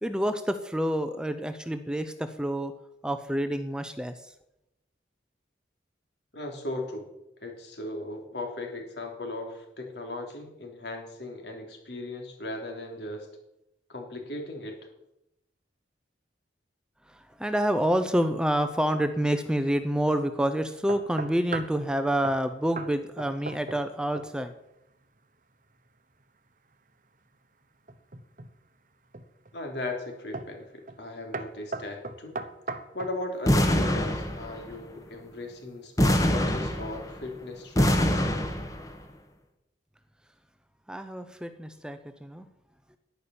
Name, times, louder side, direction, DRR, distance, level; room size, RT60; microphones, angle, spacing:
voice 1, 0.0-2.7 3.0-4.3 17.1-24.5 40.9-42.5, equal, 5° right, 9 dB, 0.6 m, -28 dB
voice 2, 6.3-7.1 7.4-13.3 13.9-14.8 29.5-32.4 32.9-38.3, left 2 dB, 70° left, 2 dB, 3.3 m, -37 dB
sound 1, 20.9-21.8 22.2-22.4 22.8-22.9 23.2-23.9 24.2-24.5 27.9-28.5 29.1-29.5 30.3-30.6 30.9-31.1 31.3-33.2, right 3 dB, 45° right, 1.0 m, -37 dB
sound 2, 33.5-34.7 36.0-37.2 37.8-38.9, equal, 20° left, 1.4 m, -24 dB
11.0 x 10.5 x 7.0 m, 0.86 s
head